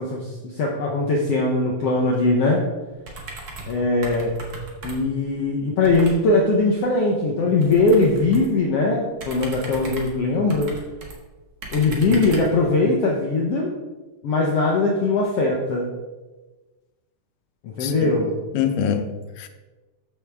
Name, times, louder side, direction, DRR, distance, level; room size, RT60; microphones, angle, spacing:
voice 1, 0.0-2.6 3.7-4.4 4.8-10.8 11.7-13.7 14.2-15.9 17.6-18.4, left 2 dB, 65° left, -1 dB, 1.7 m, -20 dB
sound 1, 3.0-3.8 4.0-5.2 5.8-6.2 7.6-8.5 9.2-11.2 11.6-12.6, right 2 dB, 45° right, 1.4 m, -37 dB
voice 2, 17.8-18.1 18.5-19.5, left 8 dB, 90° left, 8 dB, 2.3 m, -25 dB
13.0 x 6.1 x 3.5 m, 1.2 s
omnidirectional pair, 3.6 m